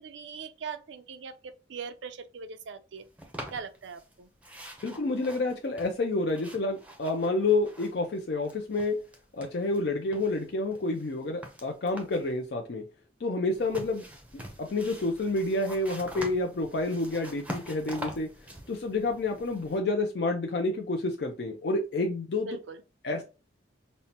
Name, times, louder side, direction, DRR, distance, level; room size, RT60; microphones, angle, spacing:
voice 1, 0.0-3.1 3.5-4.3 22.4-22.8, right 5 dB, 75° right, 0.5 m, -41 dB
sound 1, 3.2-4.1 4.4-8.2 8.4-9.8 10.1-12.3 13.5-19.8, equal, 10° right, 0.6 m, -44 dB
voice 2, 4.8-9.0 9.4-12.8 13.2-14.1 14.3-18.3 18.7-22.5 23.0-23.2, left 2 dB, 60° left, 0.4 m, -29 dB
5.3 x 2.1 x 2.8 m
head